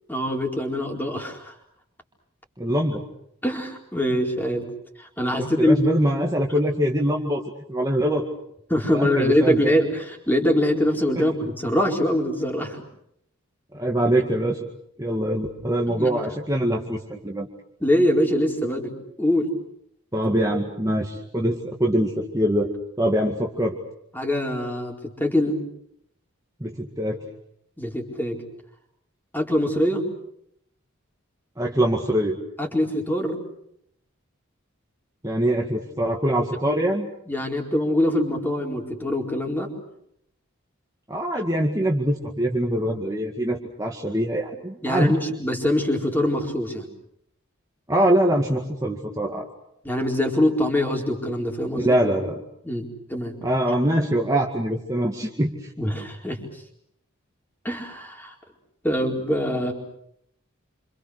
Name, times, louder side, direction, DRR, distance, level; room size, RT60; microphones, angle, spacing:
voice 1, 0.1-1.5 3.4-4.7 5.0-5.8 8.7-12.8 15.9-16.2 17.8-18.9 19.2-19.5 24.1-25.6 27.8-28.4 29.3-30.0 32.6-33.4 37.3-39.7 44.8-46.9 49.8-51.9 52.6-53.3 55.8-56.4 57.6-58.3 58.8-59.7, left 1 dB, 10° left, 1 dB, 4.4 m, -23 dB
voice 2, 2.6-3.0 5.4-7.4 7.7-8.2 8.9-9.6 11.1-11.3 13.7-14.7 15.0-17.5 20.1-22.7 23.0-23.7 26.6-27.2 31.6-32.4 35.2-37.1 41.1-45.2 47.9-49.5 51.8-52.4 53.4-55.7, right 1 dB, 15° right, 0 dB, 2.1 m, -23 dB
28.5 x 27.0 x 6.6 m, 0.74 s
head